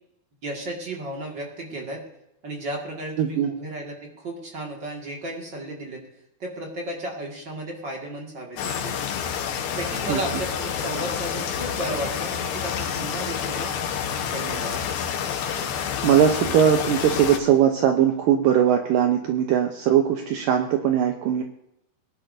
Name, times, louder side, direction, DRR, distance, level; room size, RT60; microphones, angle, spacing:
voice 1, 0.4-2.0 2.4-6.0 6.4-9.0 9.7-13.7 14.3-14.8, right 1 dB, 40° right, 0 dB, 1.9 m, -34 dB
voice 2, 3.2-3.5 10.1-10.2 16.0-21.4, right 9 dB, 75° right, 4 dB, 2.2 m, -20 dB
sound 1, 8.6-17.4, left 8 dB, 85° left, 3.2 m, -28 dB
20.5 x 11.0 x 2.6 m, 0.82 s
omnidirectional pair, 4.5 m